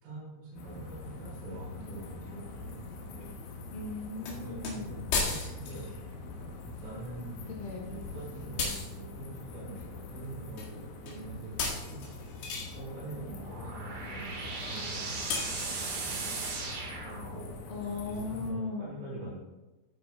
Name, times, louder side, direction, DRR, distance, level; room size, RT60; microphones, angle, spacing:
voice 1, 0.0-3.3 4.3-6.6 6.8-7.3 7.8-11.5 11.8-11.9 12.7-15.2 15.6-16.3 17.0-17.6 18.1-19.4, right 2 dB, 75° right, -8 dB, 5.9 m, -44 dB
sound 1, 0.6-18.5, left 2 dB, 85° left, 3.7 m, -44 dB
voice 2, 3.7-5.0 7.4-7.9 17.7-19.0, left 3 dB, 55° left, 0 dB, 3.1 m, -38 dB
sound 2, 4.3-4.4 4.6-4.7 5.1-5.9 8.6-9.0 10.6-10.7 11.1-11.2 11.6-12.8 15.3-15.9, left 4 dB, 70° left, 3.9 m, -33 dB
sound 3, 13.2-17.7, right 4 dB, 55° right, 2.2 m, -38 dB
16.0 x 9.1 x 2.3 m, 1.1 s
omnidirectional pair, 5.3 m